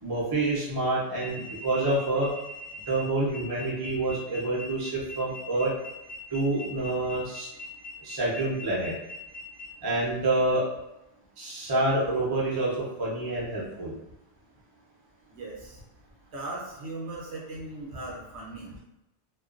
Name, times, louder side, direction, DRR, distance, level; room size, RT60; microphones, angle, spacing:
voice 1, 0.0-2.3 2.9-4.9 5.2-5.7 6.3-7.5 8.0-8.9 9.8-10.6 11.4-12.7 13.0-13.9, right 2 dB, 35° right, -6 dB, 0.4 m, -27 dB
sound 1, 1.1-9.7, equal, 45° left, 0.4 m, -42 dB
voice 2, 15.3-15.8 16.3-18.8, right 2 dB, 65° right, -3 dB, 0.8 m, -38 dB
2.4 x 2.2 x 2.4 m, 0.90 s
omnidirectional pair, 1.3 m